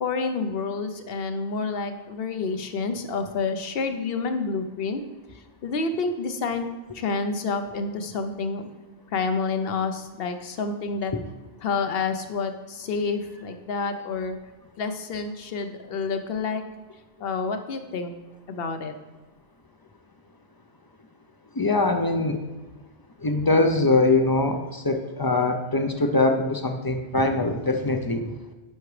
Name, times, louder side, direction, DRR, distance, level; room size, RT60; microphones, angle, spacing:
voice 1, 0.0-5.0 5.6-6.7 6.9-8.6 9.1-11.1 11.6-14.4 14.8-16.6 17.2-18.1 18.5-18.9, left 4 dB, 65° left, 8 dB, 0.9 m, -28 dB
voice 2, 21.6-22.4 23.2-28.2, left 2 dB, 35° left, 6 dB, 0.4 m, -22 dB
10.0 x 5.9 x 3.2 m, 1.2 s
omnidirectional pair, 1.1 m